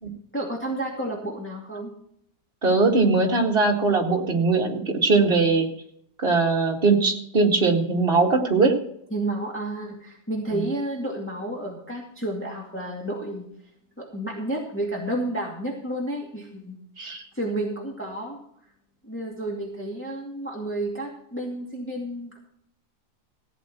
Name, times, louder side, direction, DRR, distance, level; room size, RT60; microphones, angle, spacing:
voice 1, 0.3-1.9 9.1-13.5 14.0-18.4 19.0-22.4, right 1 dB, 5° left, -2 dB, 2.2 m, -31 dB
voice 2, 2.6-5.7 6.2-8.7 17.0-17.2, right 3 dB, 35° right, 1 dB, 2.2 m, -20 dB
16.0 x 9.2 x 4.5 m, 0.69 s
omnidirectional pair, 1.7 m